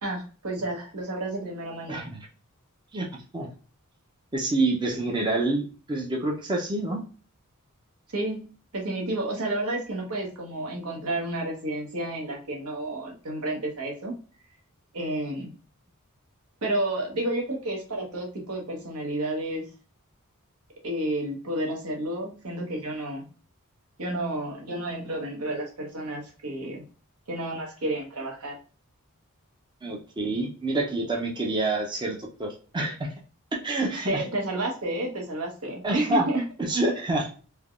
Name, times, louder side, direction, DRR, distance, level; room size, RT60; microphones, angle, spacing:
voice 1, 0.0-2.1 8.1-14.1 14.9-15.5 16.6-19.7 20.8-23.3 24.0-26.8 27.3-28.6 34.1-36.4, right 1 dB, 80° right, 0 dB, 1.0 m, -31 dB
voice 2, 1.9-2.2 2.9-3.1 3.3-3.5 4.3-7.0 29.8-33.1 33.6-34.2 35.8-36.3 36.6-37.3, right 2 dB, 20° right, 0 dB, 0.4 m, -27 dB
3.4 x 2.2 x 2.3 m, 0.38 s
head